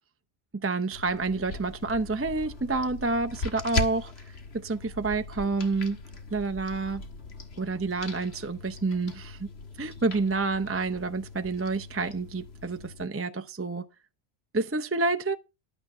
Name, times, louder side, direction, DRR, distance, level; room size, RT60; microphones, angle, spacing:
voice 1, 0.5-6.0 6.3-7.0 7.6-9.5 9.8-13.9 14.5-15.4, right 3 dB, 15° right, 0.6 m, -29 dB
sound 1, 0.9-13.1, left 3 dB, 75° left, 1.8 m, -39 dB
11.5 x 9.1 x 5.5 m
omnidirectional pair, 1.1 m